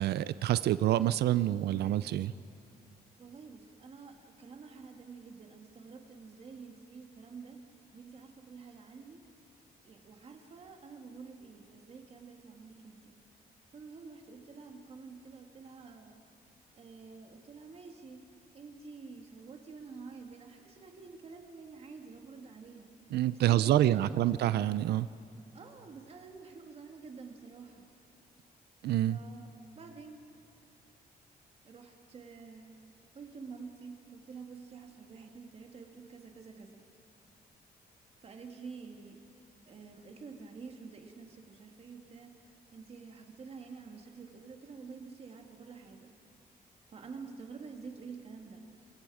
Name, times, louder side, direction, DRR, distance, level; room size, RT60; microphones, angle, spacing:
voice 1, 0.0-2.3 23.1-25.1 28.8-29.2, right 13 dB, 85° right, 16 dB, 0.5 m, -27 dB
voice 2, 3.2-7.6 7.9-9.2 9.8-13.2 13.7-16.2 16.7-22.9 23.3-24.2 25.5-27.9 29.1-30.2 31.6-32.7 33.1-36.9 38.2-39.2 39.7-42.3 42.7-46.1 46.9-48.9, right 5 dB, 40° right, 3 dB, 2.3 m, -49 dB
27.5 x 22.0 x 4.9 m, 2.8 s
cardioid pair, 160°, 16 cm